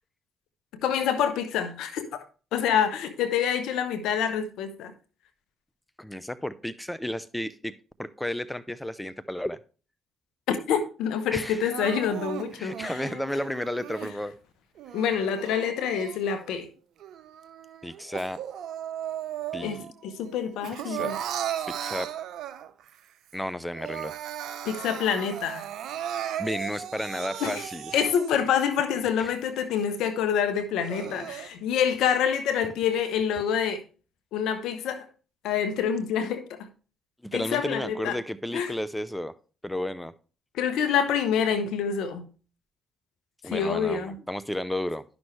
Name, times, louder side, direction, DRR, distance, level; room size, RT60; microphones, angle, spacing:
voice 1, 0.8-2.2 2.5-4.9 10.5-13.0 14.9-16.7 19.6-21.1 24.6-25.6 27.4-27.6 27.9-33.8 34.3-35.0 35.4-36.7 37.3-38.2 38.5-38.7 40.5-42.3 43.5-44.2, left 8 dB, 75° left, 1.0 m, -27 dB
voice 2, 6.0-7.7 8.0-9.6 11.3-11.7 12.6-14.3 17.8-18.4 19.5-19.9 20.8-21.2 21.8-22.1 23.3-24.1 26.4-28.1 29.2-29.3 37.3-39.3 39.6-40.1 43.4-45.0, left 1 dB, 10° left, 0.5 m, -32 dB
Crying sobbing, 11.7-14.1 14.8-16.5 17.0-19.9 20.2-22.9 23.3-23.4 23.7-28.5 29.1-29.2 29.7-29.8 30.6-31.5, right 10 dB, 70° right, 0.6 m, -36 dB
11.0 x 6.1 x 3.2 m
hypercardioid pair, 55°, 0 cm